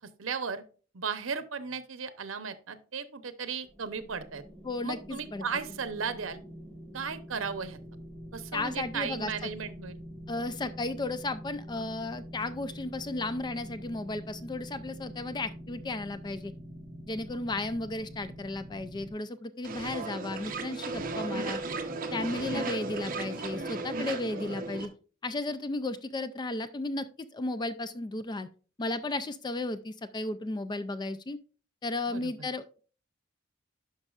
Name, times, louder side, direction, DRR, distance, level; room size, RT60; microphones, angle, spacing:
voice 1, 0.2-0.6 0.9-4.4 4.8-6.4 6.9-7.8 8.3-10.0 17.6-17.7 32.1-32.5, right 6 dB, 85° right, 11 dB, 0.8 m, -36 dB
sound 1, 3.7-19.1, equal, 5° left, 1.6 m, -45 dB
voice 2, 4.6-5.4 8.5-9.5 10.3-16.5 17.1-21.6 22.1-24.9 25.2-27.1 27.3-28.5 28.8-31.4 31.8-32.8, left 2 dB, 20° left, 13 dB, 0.3 m, -34 dB
sound 2, 19.6-24.9, right 3 dB, 45° right, 0.9 m, -35 dB
11.5 x 5.3 x 2.4 m, 0.38 s
head